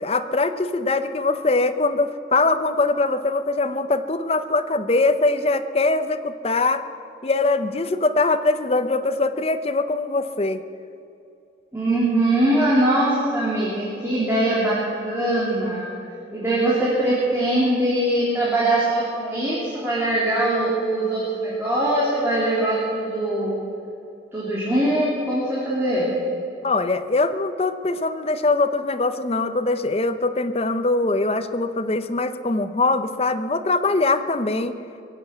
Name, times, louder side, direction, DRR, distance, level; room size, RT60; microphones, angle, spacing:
voice 1, 0.0-6.8 7.2-10.6 26.6-34.7, left 3 dB, 35° left, 9 dB, 0.7 m, -22 dB
voice 2, 11.7-14.8 15.0-15.9 16.3-23.5 24.3-26.1, right 1 dB, 15° right, -7 dB, 2.8 m, -22 dB
22.5 x 7.9 x 8.2 m, 2.8 s
head